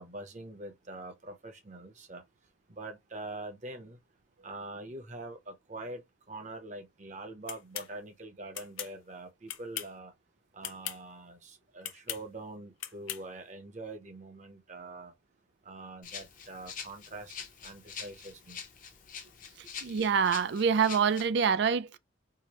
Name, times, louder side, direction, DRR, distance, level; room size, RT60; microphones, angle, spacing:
voice 1, 0.0-2.2 2.7-4.0 4.4-6.0 6.3-10.1 10.5-15.1 15.7-17.3 17.6-18.6, right 2 dB, 35° right, 0.8 m, -44 dB
sound 1, 7.5-7.9 8.5-8.9 9.5-10.0 10.6-11.0 11.8-12.2 12.8-13.2, left 12 dB, 85° left, 0.6 m, -38 dB
Rattle (instrument), 16.0-21.3, left 7 dB, 40° left, 0.7 m, -45 dB
voice 2, 19.8-22.0, right 6 dB, 60° right, 0.3 m, -26 dB
4.7 x 2.1 x 2.9 m
head